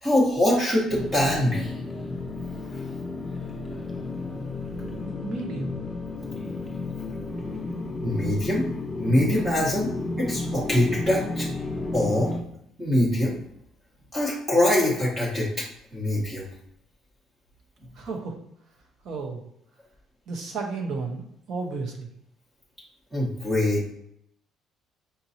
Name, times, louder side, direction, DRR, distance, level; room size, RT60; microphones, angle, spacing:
voice 1, 0.0-1.8 8.0-8.6 9.0-9.9 10.2-11.5 11.9-12.3 12.8-13.4 14.1-15.7 15.9-16.5 23.1-23.9, left 1 dB, 15° right, -4 dB, 1.0 m, -23 dB
sound 1, 0.9-12.4, left 2 dB, 10° left, 0.6 m, -32 dB
voice 2, 4.7-5.8 17.9-18.4 19.0-19.4 20.3-22.1, right 4 dB, 55° right, 2 dB, 1.0 m, -33 dB
5.2 x 3.0 x 2.7 m, 0.73 s
cardioid pair, 140°, 0 cm